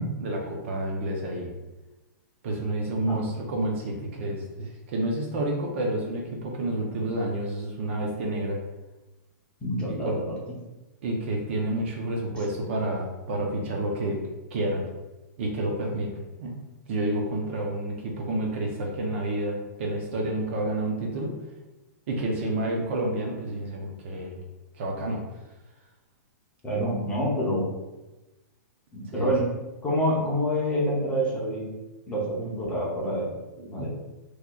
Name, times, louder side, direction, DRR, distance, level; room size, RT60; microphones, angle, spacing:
voice 1, 0.2-1.5 2.4-8.6 9.9-10.2 11.0-14.2 14.5-14.9 15.4-16.6 16.9-21.4 22.1-24.4 24.8-25.2 29.1-29.3 33.6-33.9, right 1 dB, 40° right, 1 dB, 0.5 m, -29 dB
voice 2, 9.6-10.3 26.6-27.7 28.9-29.5 29.8-31.7 32.1-33.3 33.7-33.9, equal, 10° left, -6 dB, 0.6 m, -27 dB
3.8 x 3.1 x 2.3 m, 1.1 s
hypercardioid pair, 170°, 10 cm